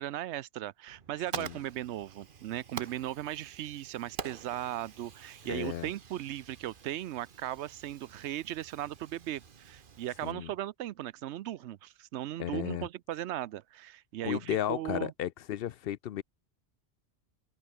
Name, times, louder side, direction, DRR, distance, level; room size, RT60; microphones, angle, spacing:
voice 1, 0.0-15.1, right 13 dB, 85° right, 0.9 m, -37 dB
Fire, 0.9-10.3, right 6 dB, 50° right, 1.2 m, -47 dB
voice 2, 5.5-5.9 10.2-10.5 12.4-12.9 14.2-16.2, left 11 dB, 65° left, 0.7 m, -34 dB
open air
omnidirectional pair, 1.1 m